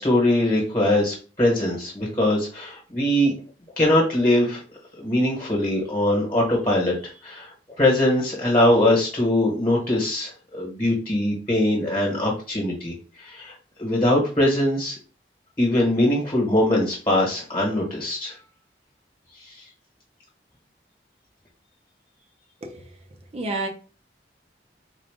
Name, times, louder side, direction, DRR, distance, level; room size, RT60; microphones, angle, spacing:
voice 1, 0.0-3.3 3.8-4.6 5.0-13.5 13.8-14.9 15.6-18.3 19.4-19.6, left 1 dB, 25° left, 1.3 m, -22 dB
voice 2, 22.6-22.9 23.3-23.7, right 2 dB, 35° right, 0.7 m, -29 dB
3.8 x 2.4 x 3.5 m
head